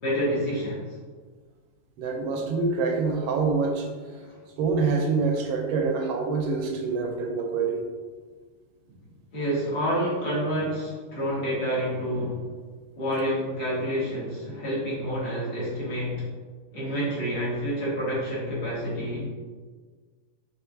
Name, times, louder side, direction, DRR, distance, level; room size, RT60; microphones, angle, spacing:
voice 1, 0.0-0.9 4.2-4.4 9.3-12.4 13.0-16.2 16.7-19.3, equal, 55° left, -8 dB, 2.1 m, -28 dB
voice 2, 2.0-3.9 4.6-7.9, right 4 dB, 80° right, 3 dB, 1.4 m, -26 dB
5.6 x 3.3 x 2.3 m, 1.5 s
omnidirectional pair, 2.3 m